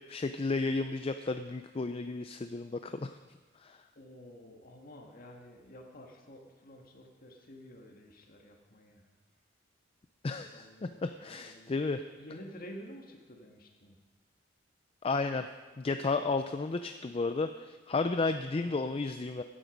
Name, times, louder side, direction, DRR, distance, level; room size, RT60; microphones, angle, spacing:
voice 1, 0.1-3.2 3.6-3.8 10.2-12.0 15.0-15.5 15.8-19.4, left 3 dB, 30° left, 8 dB, 0.4 m, -33 dB
voice 2, 4.0-9.0 10.3-14.0 18.5-18.9, equal, 50° left, 1 dB, 1.9 m, -51 dB
15.0 x 10.0 x 5.2 m, 1.3 s
head